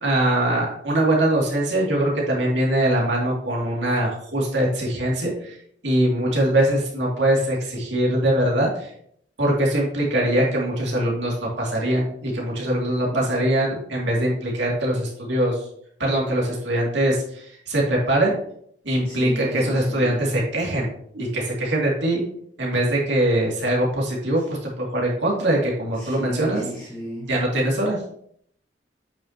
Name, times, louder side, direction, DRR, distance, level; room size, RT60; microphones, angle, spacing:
voice 1, 0.0-5.5 5.8-8.9 9.4-15.5 16.0-18.3 18.8-20.9 21.1-22.2 22.6-26.6 27.3-28.0, right 1 dB, 75° right, -3 dB, 2.4 m, -22 dB
voice 2, 19.0-20.3 24.4-24.5 25.9-27.3, equal, 5° left, -6 dB, 1.4 m, -35 dB
8.8 x 5.9 x 2.9 m, 0.66 s
head